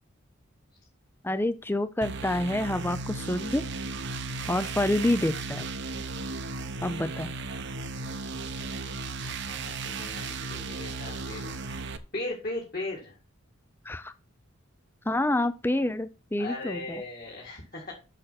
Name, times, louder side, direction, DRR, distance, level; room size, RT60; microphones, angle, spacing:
voice 1, 1.2-3.7 4.5-5.6 6.8-7.3 13.9-14.1 15.1-17.0, left 1 dB, 10° left, 0.4 m, -28 dB
sound 1, 2.0-12.0, right 3 dB, 55° right, 0.9 m, -35 dB
voice 2, 9.0-11.8 12.1-13.2 16.4-17.9, left 2 dB, 45° left, 2.3 m, -38 dB
6.6 x 6.6 x 5.8 m
head